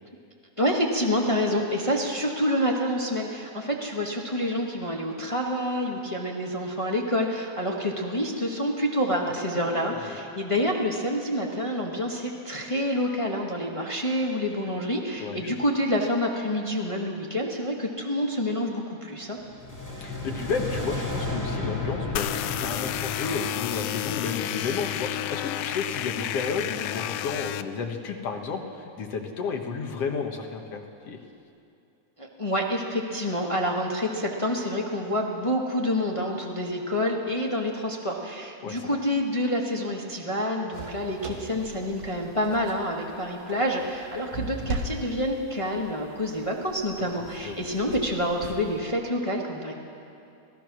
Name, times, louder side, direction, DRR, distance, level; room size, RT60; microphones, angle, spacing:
voice 1, 0.6-19.4 32.2-49.7, equal, 30° left, -1 dB, 0.6 m, -27 dB
voice 2, 9.3-10.2 15.2-15.6 20.0-31.2 38.6-39.0 47.4-47.7, left 5 dB, 60° left, 3 dB, 2.2 m, -32 dB
sound 1, 19.4-24.6, left 2 dB, 5° left, 2.0 m, -34 dB
sound 2, 22.2-27.6, left 12 dB, 80° left, 1.4 m, -31 dB
sound 3, 40.7-48.8, right 2 dB, 80° right, 3.3 m, -39 dB
26.0 x 17.5 x 6.2 m, 2.6 s
omnidirectional pair, 3.4 m